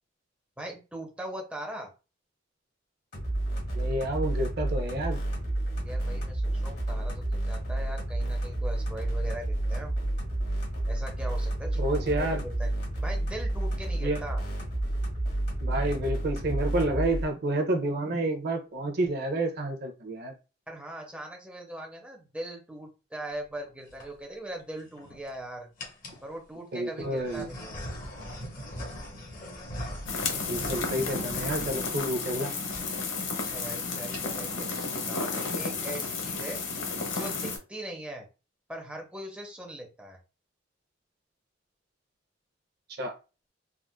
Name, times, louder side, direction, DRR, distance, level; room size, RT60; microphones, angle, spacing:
voice 1, 0.6-1.9 5.8-10.0 10.9-12.7 13.0-14.4 20.7-25.7 26.2-27.8 33.4-36.6 37.1-38.3 38.7-40.2, right 1 dB, 5° right, 0 dB, 0.7 m, -40 dB
sound 1, 3.1-17.2, right 1 dB, 60° left, 1.4 m, -30 dB
voice 2, 3.7-5.2 11.8-12.4 14.0-14.2 15.6-20.3 26.7-27.5 30.5-32.5 42.9-43.2, right 1 dB, 55° right, 5 dB, 0.6 m, -29 dB
sound 2, 23.7-24.1 24.8-25.3 25.8-26.2 27.0-32.4 32.7-32.9 33.2-33.3 33.5-33.7 34.0-34.5, equal, 45° left, 1.0 m, -41 dB
sound 3, 30.1-37.6, left 4 dB, 75° left, 0.8 m, -32 dB
3.6 x 2.4 x 2.3 m, 0.31 s
head